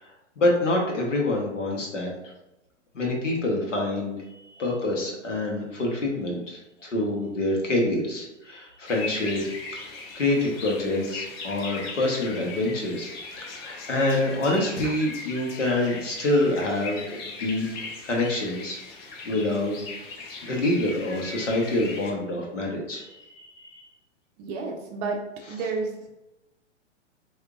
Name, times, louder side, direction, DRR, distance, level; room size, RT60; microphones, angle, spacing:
voice 1, 0.4-2.1 2.9-4.2 4.6-9.4 9.7-9.8 10.1-13.1 13.5-17.7 18.0-18.8 19.2-19.8 20.4-23.8, left 2 dB, 85° left, -1 dB, 1.2 m, -26 dB
sound 1, 8.9-22.1, left 3 dB, 25° left, 0.3 m, -39 dB
voice 2, 24.4-25.2 25.5-26.1, right 4 dB, 30° right, 1 dB, 0.5 m, -31 dB
4.6 x 2.7 x 2.5 m, 0.96 s
hypercardioid pair, 115°, 36 cm